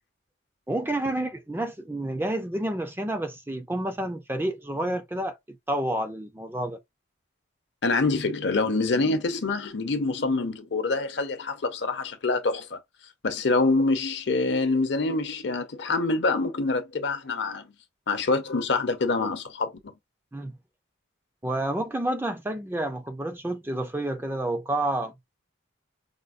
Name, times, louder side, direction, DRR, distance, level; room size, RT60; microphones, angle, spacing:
voice 1, 0.7-5.4 5.7-6.8 20.3-20.5 21.4-25.1, right 1 dB, 10° right, 0.4 m, -29 dB
voice 2, 7.8-12.8 13.2-17.7 18.1-19.7, left 3 dB, 60° left, 0.7 m, -25 dB
5.0 x 2.0 x 2.5 m
head